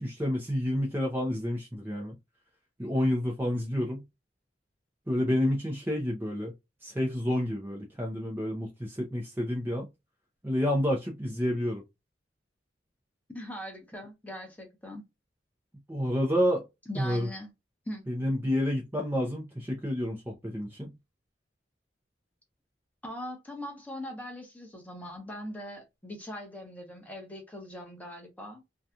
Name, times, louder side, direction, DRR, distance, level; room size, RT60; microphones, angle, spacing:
voice 1, 0.0-2.2 2.8-4.0 5.1-6.5 6.8-9.9 10.4-11.8 15.9-16.6 17.0-17.3 18.1-20.9, equal, 10° right, 0.5 m, -29 dB
voice 2, 13.3-15.0 16.9-17.5 17.9-18.1 23.0-28.6, equal, 10° left, 0.9 m, -41 dB
2.7 x 2.3 x 2.3 m
head